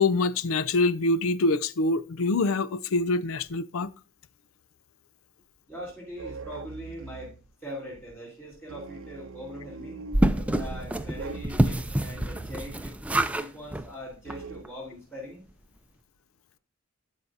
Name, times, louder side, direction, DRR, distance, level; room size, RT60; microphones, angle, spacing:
voice 1, 0.0-3.9, left 3 dB, 85° left, 0.5 m, -25 dB
voice 2, 5.7-10.0 10.5-13.0 13.3-15.4, equal, 10° left, 4.2 m, -41 dB
sound 1, 6.2-7.4 8.7-13.0 14.3-14.6, right 4 dB, 70° right, 0.5 m, -42 dB
sound 2, 10.1-13.5 13.7-13.9 14.3-14.4 14.6-14.7, right 1 dB, 5° right, 0.5 m, -26 dB
12.5 x 5.6 x 2.7 m
head